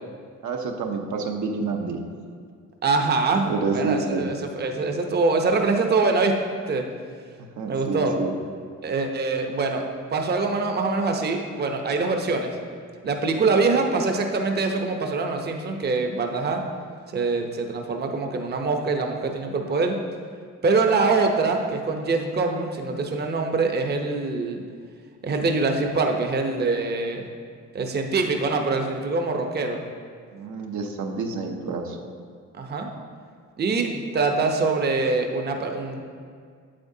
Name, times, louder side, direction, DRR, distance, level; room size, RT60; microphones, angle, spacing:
voice 1, 0.4-2.0 3.4-4.3 7.4-8.4 30.3-32.0, right 4 dB, 75° right, 2 dB, 0.9 m, -28 dB
voice 2, 2.8-3.5 3.7-6.3 6.7-6.8 7.6-8.1 8.8-9.8 10.1-12.5 13.0-16.6 17.1-20.0 20.6-24.6 25.2-27.2 27.7-29.8 32.6-32.9 33.6-36.0, right 3 dB, 35° right, 4 dB, 0.7 m, -24 dB
8.6 x 7.8 x 2.7 m, 2.1 s
cardioid pair, 90°, 30 cm